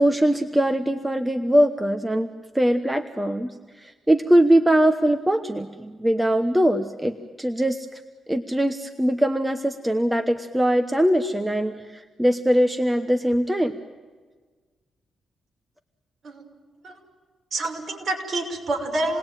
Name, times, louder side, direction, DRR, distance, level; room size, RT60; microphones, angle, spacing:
voice 1, 0.0-2.3 2.5-8.0 8.3-13.8, right 1 dB, 5° right, 6 dB, 1.1 m, -21 dB
voice 2, 17.5-19.2, right 2 dB, 45° right, 1 dB, 5.9 m, -27 dB
28.5 x 20.0 x 9.1 m, 1.4 s
cardioid pair, 130°, 0 cm